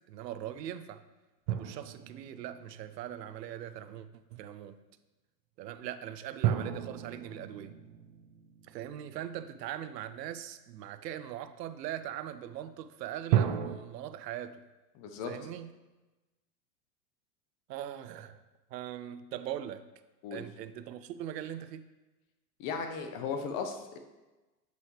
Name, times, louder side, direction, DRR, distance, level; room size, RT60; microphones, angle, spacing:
voice 1, 0.1-1.0 1.5-4.8 5.6-7.8 8.6-14.6 15.3-15.7 17.7-18.4 18.7-19.8 20.3-21.8, right 11 dB, 80° right, 12 dB, 0.6 m, -41 dB
sound 1, 1.5-3.4 6.4-9.7 13.3-13.8, right 10 dB, 35° right, 0.4 m, -33 dB
voice 2, 15.0-15.4 20.2-20.4 22.6-24.0, left 5 dB, 45° left, 6 dB, 0.9 m, -36 dB
7.8 x 5.4 x 3.3 m, 1.1 s
hypercardioid pair, 120°, 48 cm